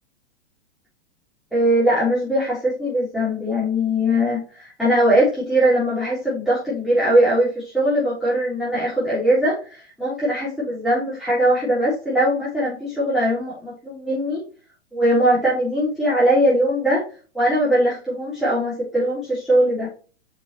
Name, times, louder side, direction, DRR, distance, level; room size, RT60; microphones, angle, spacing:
voice 1, 1.5-14.4 14.9-17.0 17.3-19.9, equal, ahead, -10 dB, 3.6 m, -20 dB
6.7 x 5.8 x 3.1 m, 0.37 s
hypercardioid pair, 125°, 34 cm